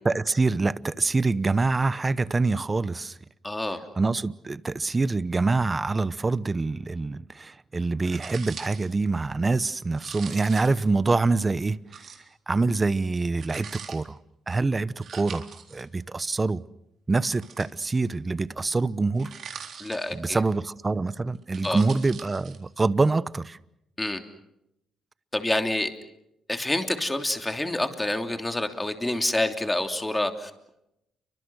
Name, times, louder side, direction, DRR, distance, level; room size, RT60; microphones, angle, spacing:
voice 1, 0.0-3.2 4.0-12.1 12.5-14.2 14.5-16.6 17.1-19.3 20.1-23.6, right 3 dB, 25° right, 0.9 m, -25 dB
voice 2, 3.4-3.8 19.8-20.4 21.6-21.8 24.0-24.2 25.3-25.9 26.5-30.7, left 1 dB, 10° left, 3.1 m, -27 dB
sound 1, 8.1-8.9 9.9-10.9 11.9-12.3 13.4-14.0 15.0-15.8 17.3-18.1 19.2-20.4 21.3-22.6, right 7 dB, 60° right, 3.9 m, -42 dB
29.5 x 24.5 x 6.3 m
cardioid pair, 90°, 0 cm